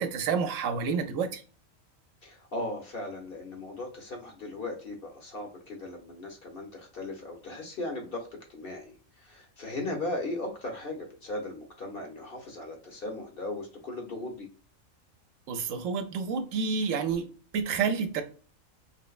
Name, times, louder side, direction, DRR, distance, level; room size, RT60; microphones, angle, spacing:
voice 1, 0.0-1.4 15.5-17.3 17.5-18.2, right 5 dB, 75° right, 0.9 m, -29 dB
voice 2, 2.2-14.5, left 2 dB, 50° left, 0.9 m, -37 dB
3.2 x 3.1 x 2.3 m
omnidirectional pair, 1.4 m